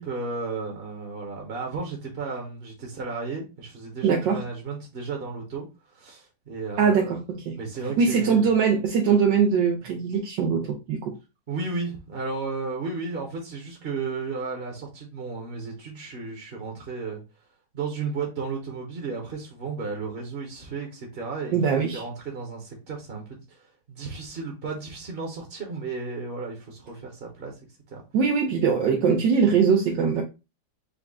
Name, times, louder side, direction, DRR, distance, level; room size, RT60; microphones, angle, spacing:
voice 1, 0.0-5.6 5.9-7.1 7.5-8.4 11.5-17.2 17.7-21.6 21.9-27.5 27.9-28.0, right 4 dB, 40° right, 0.9 m, -34 dB
voice 2, 4.0-4.4 6.8-7.2 7.5-7.6 8.0-11.1 21.5-22.0 28.1-30.2, right 6 dB, 80° right, 1.5 m, -21 dB
5.3 x 2.3 x 3.5 m
omnidirectional pair, 2.0 m